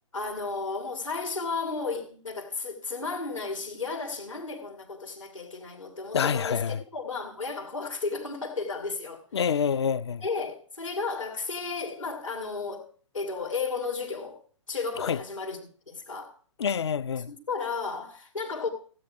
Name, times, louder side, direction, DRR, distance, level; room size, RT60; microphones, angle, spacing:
voice 1, 0.1-9.4 10.2-12.9 13.1-14.4 14.7-15.6 15.9-16.3 17.3-18.7, left 4 dB, 80° left, 2.2 m, -33 dB
voice 2, 6.1-6.8 9.3-10.2 15.0-15.2 16.6-17.3, left 7 dB, 55° left, 0.5 m, -27 dB
15.5 x 8.7 x 4.7 m
figure-of-eight pair, 120°, 16 cm